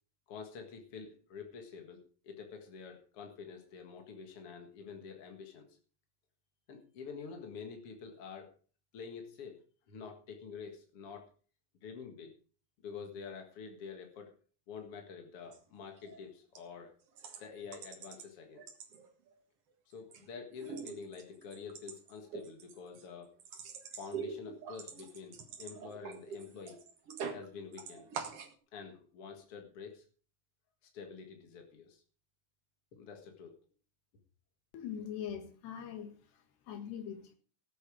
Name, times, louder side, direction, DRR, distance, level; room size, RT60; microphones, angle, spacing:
voice 1, 0.3-5.8 6.7-8.5 8.9-9.6 9.9-11.3 11.8-12.3 12.8-14.3 14.7-16.9 17.4-18.6 19.8-23.3 24.0-26.8 27.3-28.1 28.7-30.0 30.8-32.0 32.9-33.6, left 6 dB, 55° left, 3 dB, 1.7 m, -47 dB
sound 1, 15.4-15.6 16.0-16.2 16.6-16.7 17.2-18.3 18.6-19.3 19.7-20.3 20.5-27.5 27.7-28.5, right 6 dB, 50° right, 1.8 m, -45 dB
voice 2, 34.7-37.4, left 8 dB, 70° left, 7 dB, 3.9 m, -43 dB
17.5 x 8.7 x 5.0 m, 0.40 s
omnidirectional pair, 5.0 m